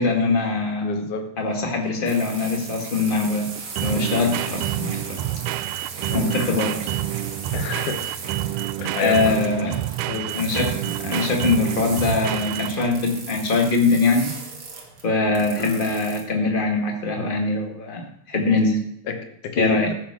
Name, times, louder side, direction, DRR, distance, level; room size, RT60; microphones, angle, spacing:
voice 1, 0.0-1.1 1.4-3.5 3.8-5.2 6.1-6.9 9.0-9.8 10.3-14.3 15.0-18.8 19.6-19.9, left 3 dB, 25° left, 2 dB, 1.0 m, -22 dB
voice 2, 0.8-1.3 6.1-6.3 7.5-8.1 8.8-9.4 10.1-10.4 15.6-15.9 19.1-19.9, left 6 dB, 65° left, 6 dB, 2.5 m, -29 dB
sound 1, 1.5-13.1, right 15 dB, 90° right, 1.8 m, -28 dB
sound 2, 2.1-16.2, right 4 dB, 40° right, 2.1 m, -37 dB
14.5 x 7.7 x 6.1 m, 0.72 s
omnidirectional pair, 4.3 m